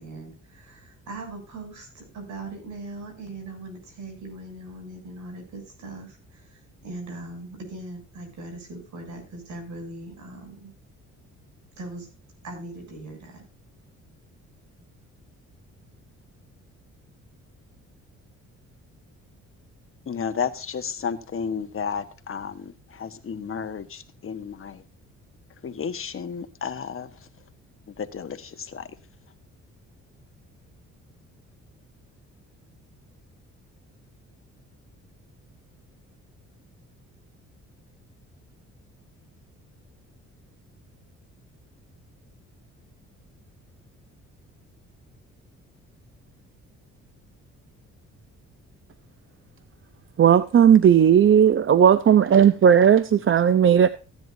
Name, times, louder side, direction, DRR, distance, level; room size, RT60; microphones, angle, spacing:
voice 1, 0.0-10.7 11.8-12.1 12.4-13.4, right 2 dB, 70° right, 7.3 m, -40 dB
voice 2, 20.1-24.8 25.6-27.3 27.9-28.9, left 6 dB, 45° left, 1.4 m, -32 dB
voice 3, 50.2-53.9, right 8 dB, 45° right, 0.7 m, -16 dB
15.5 x 10.5 x 2.7 m
cardioid pair, 90°, 30 cm